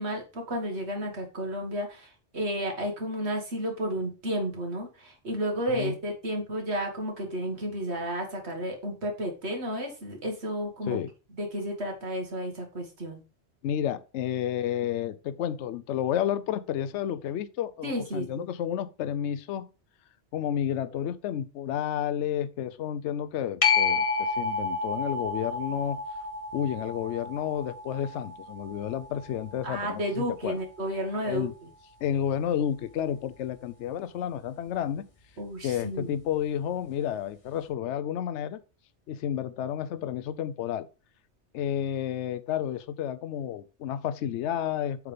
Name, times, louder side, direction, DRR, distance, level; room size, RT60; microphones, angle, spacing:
voice 1, 0.0-11.0 11.4-13.2 17.8-18.5 29.6-31.7 35.4-36.1, equal, 60° right, 2.0 m, -32 dB
voice 2, 13.6-19.7 20.3-26.0 26.5-30.6 31.2-31.5 32.0-35.0 35.6-38.6 39.1-40.9 41.5-45.1, left 10 dB, 70° left, 0.9 m, -31 dB
sound 1, 23.6-30.8 36.3-36.4, left 4 dB, 30° left, 1.0 m, -31 dB
8.0 x 3.6 x 5.0 m
omnidirectional pair, 1.2 m